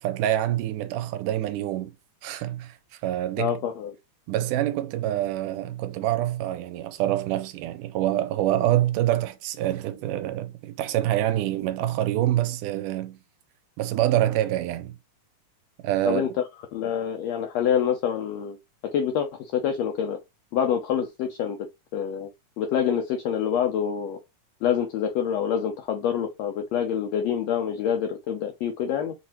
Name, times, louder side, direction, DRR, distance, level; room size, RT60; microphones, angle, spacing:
voice 1, 0.0-1.9 2.2-3.5 4.3-13.2 13.8-15.0 15.8-16.2, right 13 dB, 80° right, 2.1 m, -26 dB
voice 2, 3.4-3.9 16.0-16.3 16.7-18.6 18.9-20.2 20.5-21.6 21.9-22.3 22.6-24.2 24.6-29.1, left 8 dB, 80° left, 1.5 m, -26 dB
5.7 x 2.8 x 2.9 m
omnidirectional pair, 3.7 m